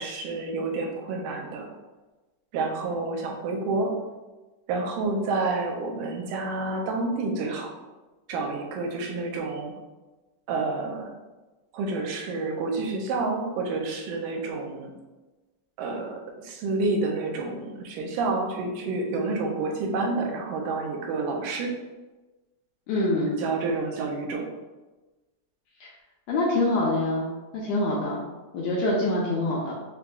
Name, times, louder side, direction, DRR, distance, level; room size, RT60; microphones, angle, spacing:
voice 1, 0.0-1.7 2.5-3.9 4.7-7.7 8.3-9.7 10.5-11.1 11.7-14.9 15.8-21.7 23.4-24.4, right 3 dB, 85° right, 1 dB, 2.1 m, -29 dB
voice 2, 22.9-23.4 25.8-25.9 26.3-27.3 27.5-28.2 28.5-29.7, left 2 dB, 80° left, -4 dB, 1.6 m, -25 dB
6.1 x 2.4 x 2.2 m, 1.2 s
omnidirectional pair, 3.6 m